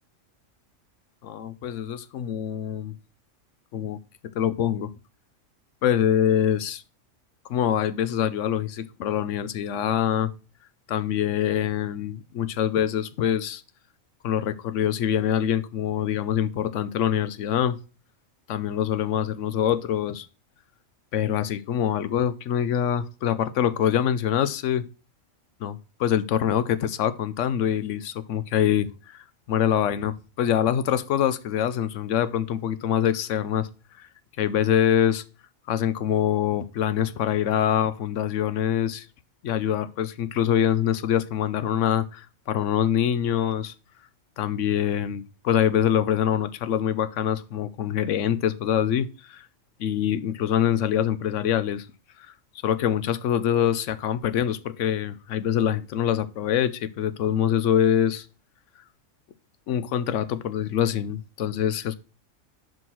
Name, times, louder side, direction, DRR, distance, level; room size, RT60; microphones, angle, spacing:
voice 1, 1.2-2.9 3.7-4.9 5.8-6.8 7.4-10.3 10.9-13.6 14.2-17.8 18.5-20.3 21.1-24.8 25.6-33.7 34.0-34.1 34.4-35.2 35.7-39.1 39.4-43.7 44.4-49.5 49.8-51.9 52.2-52.3 52.6-58.3 59.7-62.0, left 9 dB, 75° left, 0.9 m, -25 dB
5.6 x 5.1 x 6.0 m
omnidirectional pair, 1.4 m